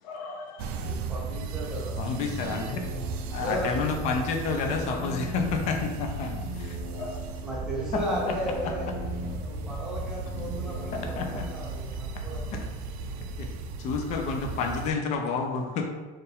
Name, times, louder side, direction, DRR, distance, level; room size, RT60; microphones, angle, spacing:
voice 1, 0.0-1.0 4.8-5.3 7.0-7.4 9.2-9.5 10.7-10.9, left 3 dB, 80° left, 3 dB, 0.7 m, -42 dB
sound 1, 0.6-14.9, right 4 dB, 70° right, 0.4 m, -36 dB
voice 2, 0.8-2.3 3.3-3.8 5.1-5.2 7.4-9.0 9.4-12.6, equal, 5° right, -6 dB, 0.8 m, -35 dB
sound 2, 1.8-11.8, left 1 dB, 55° left, 1.3 m, -41 dB
voice 3, 2.0-2.8 3.3-6.8 7.9-8.3 10.9-11.5 13.4-13.5 13.8-15.8, left 4 dB, 35° left, 3 dB, 0.5 m, -29 dB
4.5 x 2.5 x 3.5 m, 1.3 s
cardioid pair, 170°, 19 cm